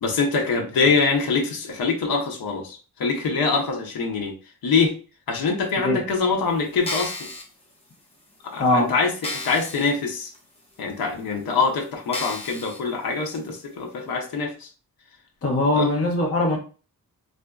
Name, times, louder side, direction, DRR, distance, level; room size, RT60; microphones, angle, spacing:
voice 1, 0.0-4.3 4.6-4.9 5.3-7.3 8.4-10.3 10.8-14.7 15.8-15.9, left 4 dB, 70° left, 0.9 m, -24 dB
sound 1, 6.7-7.4 8.1-8.2 8.7-8.8 9.2-9.9 10.3-10.4 11.2-11.3 12.1-12.8 13.3-13.4, left 2 dB, 15° left, 0.9 m, -32 dB
voice 2, 8.6-8.9 15.4-16.6, left 2 dB, 40° left, 0.9 m, -21 dB
4.1 x 2.6 x 2.3 m
wide cardioid pair, 175°, 37 cm